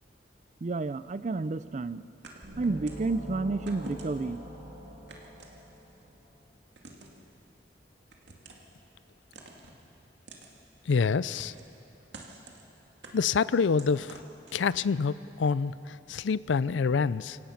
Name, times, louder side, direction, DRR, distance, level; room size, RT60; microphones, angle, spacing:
voice 1, 0.6-2.1 2.6-4.4, right 3 dB, 40° right, 16 dB, 0.4 m, -30 dB
sound 1, 2.2-3.1 3.7-4.4 5.1-6.0 6.8-7.2 8.1-8.7 9.3-9.8 10.3-10.5 11.4-11.8 12.1-12.6 13.0-14.9, right 2 dB, 70° right, 2.2 m, -48 dB
sound 2, 2.4-6.2, equal, 55° right, 3.5 m, -43 dB
voice 2, 10.9-11.5 13.1-14.2 14.5-17.4, left 5 dB, 80° left, 18 dB, 0.4 m, -27 dB
26.5 x 16.5 x 5.9 m, 2.9 s
head